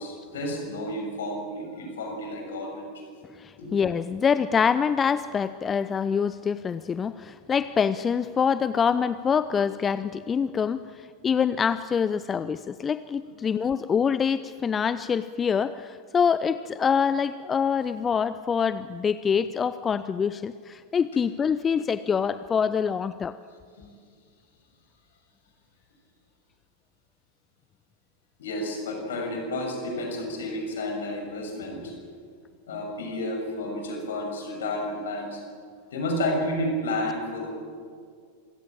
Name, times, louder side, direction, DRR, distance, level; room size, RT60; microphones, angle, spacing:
voice 1, 0.0-2.9 3.6-3.7 23.8-23.9 28.4-31.9 32.7-35.4 35.9-37.5, left 1 dB, 60° left, 2 dB, 6.5 m, -31 dB
voice 2, 3.4-23.4, left 6 dB, 20° left, 14 dB, 0.6 m, -25 dB
27.0 x 17.0 x 8.9 m, 2.1 s
figure-of-eight pair, 90°, 0 cm